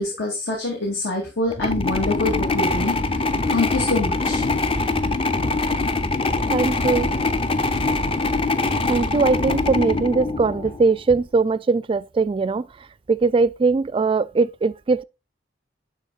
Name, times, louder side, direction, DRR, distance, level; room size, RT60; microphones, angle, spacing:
voice 1, 0.0-3.0 3.5-4.4, left 2 dB, 80° left, 2.4 m, -25 dB
sound 1, 1.5-10.9, left 3 dB, 30° left, 0.5 m, -23 dB
sound 2, 2.2-4.2 4.5-9.0 9.4-11.4, equal, 50° left, 4.2 m, -38 dB
voice 2, 6.5-7.1 8.9-15.0, right 4 dB, 30° right, 0.3 m, -21 dB
11.5 x 4.1 x 2.4 m
head